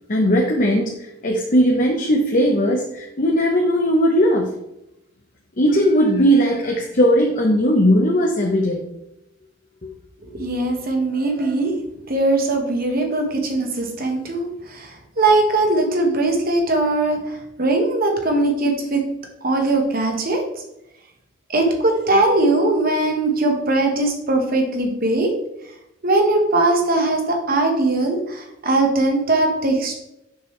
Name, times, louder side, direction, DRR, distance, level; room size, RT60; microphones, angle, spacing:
voice 1, 0.1-0.9 1.2-4.5 5.6-8.8 9.8-9.9, equal, 45° left, 0 dB, 0.8 m, -18 dB
voice 2, 10.2-11.7 12.1-19.0 19.4-20.4 21.5-25.3 26.0-29.9, right 2 dB, 50° right, 3 dB, 1.3 m, -20 dB
6.9 x 6.1 x 3.2 m, 0.86 s
head